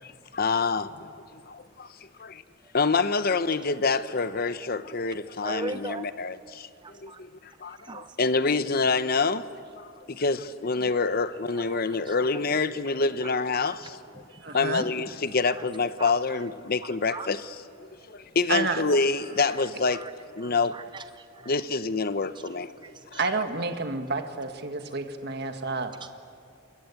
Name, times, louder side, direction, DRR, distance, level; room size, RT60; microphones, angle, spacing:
voice 1, 0.0-2.4 2.7-9.5 9.8-14.0 14.5-20.0 20.3-20.8 21.4-22.7 23.1-23.4, left 4 dB, 50° left, 0.9 m, -27 dB
voice 2, 5.4-6.1 6.8-7.2 7.7-8.2 11.5-11.8 12.1-12.2 12.5-12.6 13.2-13.3 14.3-14.6 15.6-15.7 16.0-16.1 17.1-17.3 19.4-19.6 19.9-20.1 20.4-21.5 23.1-23.3, right 3 dB, 25° right, 0.6 m, -39 dB
voice 3, 14.4-14.8 18.5-18.8 23.2-25.9, right 4 dB, 55° right, 1.7 m, -29 dB
28.0 x 22.0 x 8.4 m
head